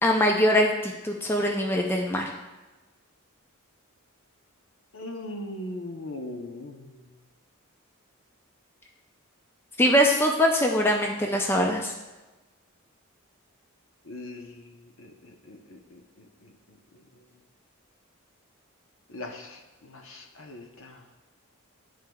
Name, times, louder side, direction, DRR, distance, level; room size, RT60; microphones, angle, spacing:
voice 1, 0.0-2.2 9.8-11.9, equal, 10° left, 1 dB, 0.4 m, -22 dB
voice 2, 4.9-7.0 14.0-16.8 19.1-21.0, left 1 dB, 60° left, 3 dB, 0.8 m, -40 dB
11.0 x 4.6 x 2.3 m, 1.1 s
head